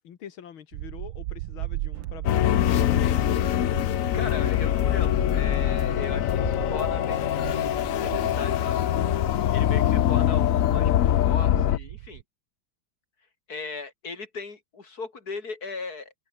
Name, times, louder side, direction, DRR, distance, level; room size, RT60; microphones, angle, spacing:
voice 1, 0.0-3.4, left 9 dB, 90° left, 2.3 m, -45 dB
sound 1, 0.7-12.2, right 17 dB, 85° right, 1.4 m, -38 dB
sound 2, 1.9-8.4, right 9 dB, 70° right, 2.1 m, -45 dB
sound 3, 2.2-11.8, left 12 dB, 70° left, 0.8 m, -23 dB
voice 2, 4.1-8.8 9.5-12.2 13.5-16.1, left 4 dB, 50° left, 3.3 m, -38 dB
omnidirectional pair, 2.2 m